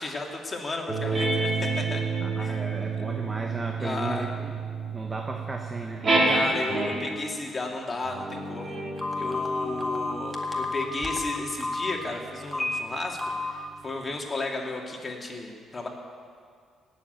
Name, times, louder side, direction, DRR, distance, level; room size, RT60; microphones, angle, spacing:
voice 1, 0.0-2.0 2.4-2.6 3.8-4.3 6.3-8.8 9.2-13.2 13.4-15.9, left 2 dB, 30° left, 0 dB, 2.5 m, -33 dB
sound 1, 0.9-7.3 8.0-12.9, right 3 dB, 45° right, 4.4 m, -30 dB
voice 2, 2.2-4.5 4.9-6.5, right 2 dB, 25° right, 2 dB, 1.3 m, -35 dB
Telephone, 9.0-11.9 12.5-12.8 13.2-13.5, left 3 dB, 10° left, 2.0 m, -30 dB
17.5 x 7.5 x 9.1 m, 2.1 s
cardioid pair, 90°, 0 cm